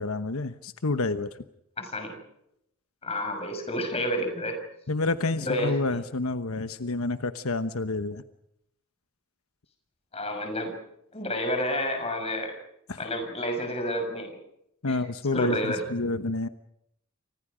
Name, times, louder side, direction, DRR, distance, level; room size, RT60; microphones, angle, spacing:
voice 1, 0.0-1.4 4.9-8.2 12.9-13.0 14.8-16.5, left 3 dB, 90° left, 11 dB, 1.1 m, -29 dB
voice 2, 1.8-2.1 3.0-4.6 5.4-5.7 10.1-10.7 11.1-12.5 13.0-14.4 14.8-15.0 15.3-15.8, equal, 30° left, 5 dB, 6.2 m, -30 dB
29.5 x 25.5 x 5.1 m, 0.77 s
head